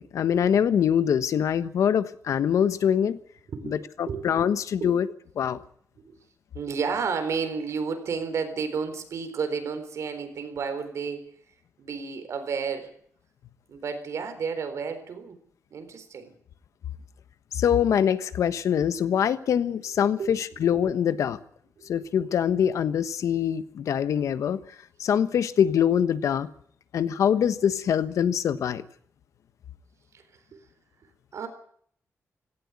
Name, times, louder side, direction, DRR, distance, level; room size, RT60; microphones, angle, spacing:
voice 1, 0.0-3.2 3.6-5.1 5.4-5.6 17.5-21.4 21.9-24.6 25.0-26.5 26.9-28.8, left 8 dB, 85° left, 13 dB, 1.3 m, -24 dB
voice 2, 3.5-4.3 4.8-4.9 6.0-6.2 6.5-11.3 11.8-12.9 13.7-15.4 15.7-16.3 20.2-20.3 21.8-21.9 31.3-31.5, right 5 dB, 70° right, 8 dB, 4.1 m, -31 dB
17.5 x 17.0 x 9.7 m, 0.63 s
wide cardioid pair, 130°, 5 cm